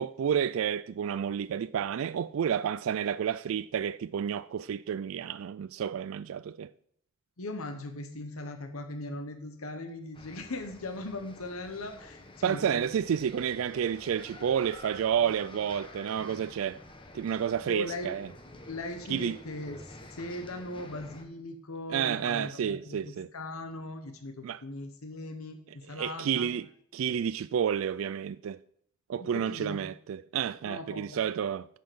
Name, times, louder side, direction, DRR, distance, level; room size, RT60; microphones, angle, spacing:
voice 1, 0.0-6.7 12.4-16.8 17.1-18.3 19.1-19.4 21.9-23.3 24.4-24.6 26.0-26.7 26.9-28.6 29.1-31.7, right 8 dB, 65° right, 0.3 m, -30 dB
voice 2, 7.4-12.9 17.6-18.1 18.6-23.0 23.3-26.5 29.2-29.8 30.6-31.2, left 2 dB, 80° left, 1.1 m, -39 dB
sound 1, 10.1-21.3, left 2 dB, 25° left, 1.2 m, -49 dB
10.5 x 5.7 x 7.8 m
head